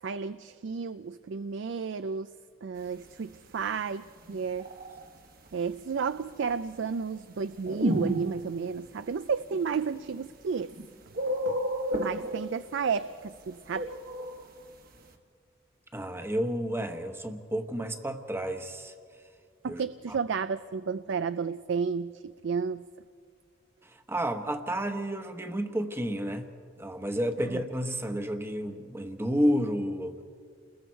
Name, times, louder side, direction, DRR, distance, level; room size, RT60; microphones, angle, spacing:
voice 1, 0.0-2.3 2.6-4.7 5.5-10.7 11.3-11.6 12.0-13.9 19.6-22.9 27.5-27.6, right 5 dB, 65° right, 14 dB, 0.4 m, -32 dB
sound 1, 4.1-5.1 7.6-8.8 9.5-9.6 10.6-10.8 11.1-12.9 13.7-14.7, equal, 50° right, 1.4 m, -31 dB
voice 2, 15.9-18.9 19.7-20.2 24.1-26.5 26.8-30.2, equal, 15° right, 7 dB, 1.1 m, -31 dB
29.5 x 21.0 x 4.5 m, 2.2 s
head